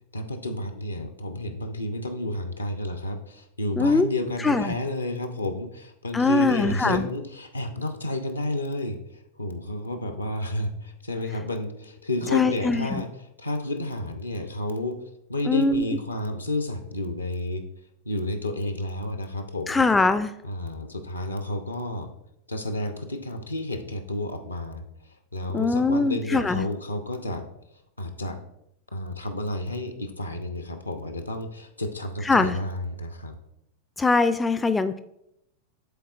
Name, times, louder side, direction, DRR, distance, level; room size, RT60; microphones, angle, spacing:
voice 1, 0.1-9.0 9.4-13.1 13.4-15.0 15.3-17.6 18.0-19.9 20.4-22.1 22.5-24.8 25.3-27.5 28.0-28.4 28.9-33.3, left 1 dB, 80° left, 7 dB, 0.7 m, -31 dB
voice 2, 3.8-4.1 4.4-4.7 6.1-7.1 12.3-13.0 15.5-15.9 19.7-20.3 25.5-26.7 32.3-32.6 34.0-35.0, left 3 dB, 10° left, 11 dB, 0.3 m, -22 dB
11.5 x 4.0 x 2.4 m, 0.79 s
figure-of-eight pair, 90°, 0 cm